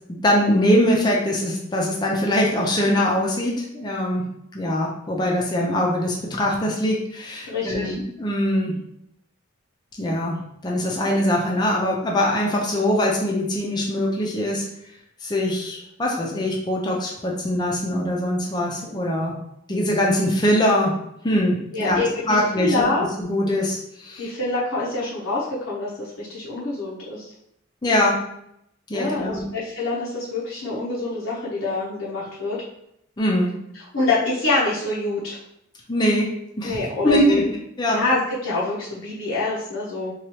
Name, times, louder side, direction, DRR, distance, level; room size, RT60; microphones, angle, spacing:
voice 1, 0.2-4.2 4.5-8.7 10.0-10.4 10.6-14.6 15.2-19.4 19.7-20.9 21.2-22.8 23.2-24.3 27.8-28.2 28.9-29.5 33.2-33.5 35.9-36.3 36.6-37.4 37.8-38.0, equal, 20° left, -2 dB, 0.5 m, -22 dB
voice 2, 7.5-7.9 21.7-23.1 24.2-27.3 28.9-32.6 33.9-35.4 36.6-37.5 37.9-40.1, left 2 dB, 75° left, -7 dB, 0.7 m, -26 dB
3.1 x 2.3 x 2.8 m, 0.77 s
head